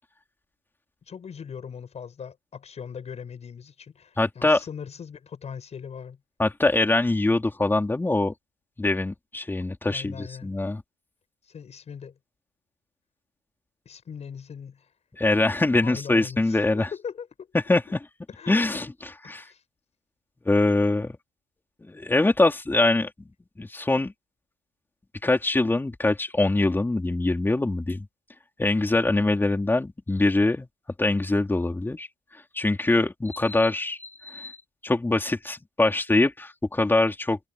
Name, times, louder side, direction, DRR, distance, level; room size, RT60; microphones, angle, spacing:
voice 1, 1.1-6.2 9.8-10.5 11.4-12.2 13.8-14.9 15.8-17.5 18.3-18.9 19.2-19.6, left 7 dB, 40° left, 6.3 m, -40 dB
voice 2, 4.2-4.6 6.4-8.3 8.8-10.8 15.2-16.9 17.7-18.0 18.5-18.8 19.3-19.4 20.5-21.2 21.8-23.3 23.6-24.1 25.2-28.1 28.6-30.7 31.0-32.1 32.5-34.6 34.8-37.4, left 2 dB, 10° left, 3.6 m, -23 dB
cardioid pair, 110°, 17 cm